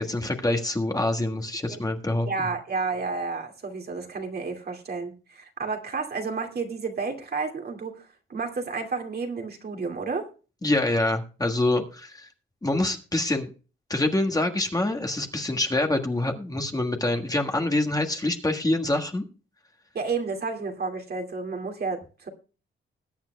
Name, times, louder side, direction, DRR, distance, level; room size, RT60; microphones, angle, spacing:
voice 1, 0.0-2.5 10.6-12.3 12.6-13.5 13.9-19.2, left 2 dB, 15° left, 3 dB, 1.5 m, -26 dB
voice 2, 2.3-10.3 19.9-22.3, right 4 dB, 50° right, 3 dB, 2.3 m, -31 dB
21.0 x 8.7 x 2.2 m, 0.35 s
cardioid pair, 100°, 21 cm